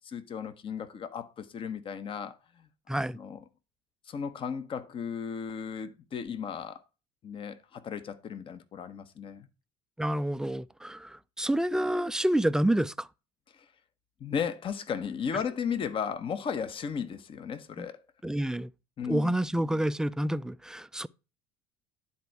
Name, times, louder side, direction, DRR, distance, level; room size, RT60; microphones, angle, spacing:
voice 1, 0.0-2.7 3.1-3.4 4.1-6.8 7.2-9.5 13.5-13.6 14.2-18.0 19.0-19.3, left 7 dB, 40° left, 1.1 m, -35 dB
voice 2, 2.9-3.2 10.0-13.1 17.8-17.9 18.2-18.7 19.0-21.1, right 1 dB, 5° right, 0.4 m, -28 dB
10.0 x 4.3 x 4.7 m
hypercardioid pair, 70°, 14 cm